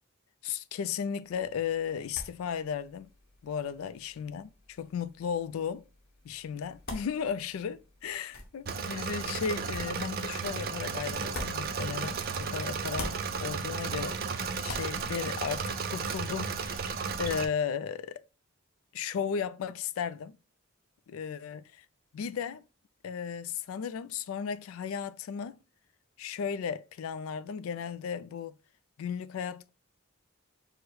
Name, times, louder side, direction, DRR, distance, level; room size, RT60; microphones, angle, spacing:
voice 1, 0.4-3.1 3.4-4.5 4.8-5.8 6.2-14.2 14.6-16.8 17.2-18.2 18.9-20.4 21.1-21.9 22.1-22.6 23.0-25.6 26.2-28.5 29.0-29.7, left 7 dB, 80° left, 0.3 m, -35 dB
sound 1, 1.2-12.4 12.7-16.1, left 2 dB, 45° left, 1.0 m, -47 dB
Engine / Mechanisms, 8.7-17.4, right 5 dB, 45° right, 0.4 m, -34 dB
4.6 x 2.1 x 4.6 m
head